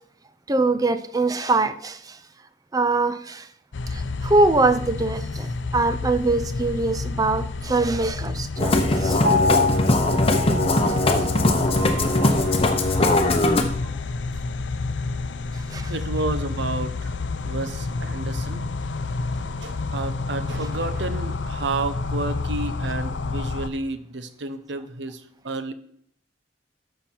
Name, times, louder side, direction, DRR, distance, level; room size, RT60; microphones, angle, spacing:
voice 1, 0.5-2.2 2.7-3.5 3.9-9.2 15.7-15.9, right 2 dB, 20° right, 0.5 m, -23 dB
sound 1, 3.7-23.7, left 3 dB, 80° left, 0.6 m, -29 dB
Musical instrument, 8.6-13.6, left 2 dB, 30° left, 0.9 m, -20 dB
Piano, 9.2-13.3 13.8-13.9, left 2 dB, 50° right, 2.1 m, -28 dB
voice 2, 15.9-17.1 17.4-18.6 19.6-25.7, right 3 dB, 75° right, 0.8 m, -31 dB
13.0 x 5.6 x 4.5 m
head